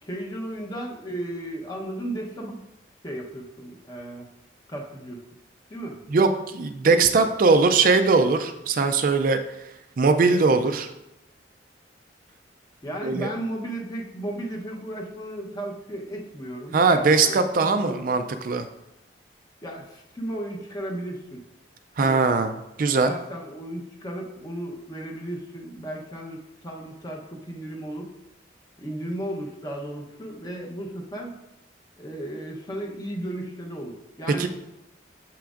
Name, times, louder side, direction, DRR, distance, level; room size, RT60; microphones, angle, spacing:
voice 1, 0.0-2.6 3.0-4.3 4.7-5.2 5.7-6.0 6.9-7.3 12.8-18.0 19.6-21.4 22.0-22.3 23.0-28.1 28.8-31.4 32.0-34.5, right 1 dB, 20° left, 0 dB, 0.8 m, -35 dB
voice 2, 6.1-9.4 10.0-10.9 13.0-13.3 16.7-18.7 22.0-22.5 22.8-23.1 34.4-34.5, right 4 dB, 50° right, 8 dB, 0.4 m, -20 dB
7.1 x 5.8 x 2.5 m, 0.89 s
head